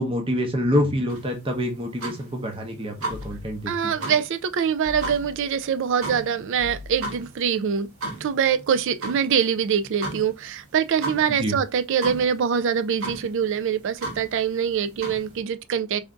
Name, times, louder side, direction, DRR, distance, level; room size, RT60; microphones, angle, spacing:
voice 1, 0.0-4.1 11.4-11.6, equal, 25° right, 0.7 m, -26 dB
sound 1, 1.1-15.4, right 2 dB, 90° right, 1.4 m, -37 dB
sound 2, 3.1-3.8 4.8-5.6 6.6-7.3, left 3 dB, 50° left, 0.6 m, -41 dB
voice 2, 3.7-7.9 8.2-16.0, right 7 dB, 60° right, 0.4 m, -24 dB
3.4 x 2.5 x 3.7 m
head